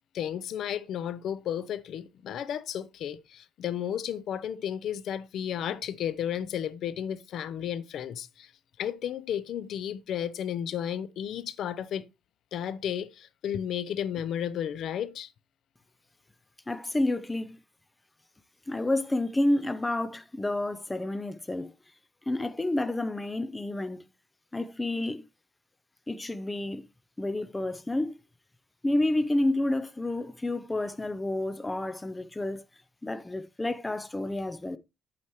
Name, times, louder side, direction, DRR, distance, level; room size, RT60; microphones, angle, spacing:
voice 1, 0.1-8.5 8.8-12.1 12.5-15.3, left 9 dB, 60° left, 0.6 m, -33 dB
voice 2, 16.7-17.6 18.7-21.7 22.3-24.0 24.5-25.3 26.1-26.8 27.2-28.2 28.8-32.6 33.0-34.8, left 1 dB, 10° left, 0.5 m, -29 dB
9.4 x 8.5 x 3.0 m
cardioid pair, 150°, 0 cm